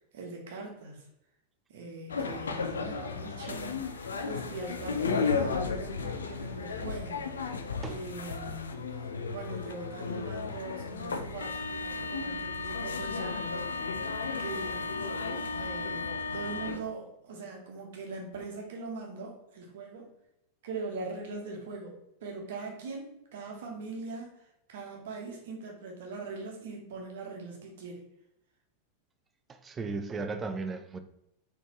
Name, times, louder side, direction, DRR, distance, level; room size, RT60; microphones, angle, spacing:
voice 1, 0.1-1.0 1.7-8.8 9.3-13.8 14.4-15.2 15.5-20.1 20.6-24.4 24.7-28.0, right 3 dB, 55° right, 0 dB, 1.0 m, -41 dB
sound 1, 2.1-16.8, left 4 dB, 70° left, 0.4 m, -34 dB
voice 2, 29.5-31.0, right 3 dB, 20° right, 9 dB, 0.4 m, -35 dB
4.1 x 3.1 x 2.9 m, 0.82 s
figure-of-eight pair, 90°, 0 cm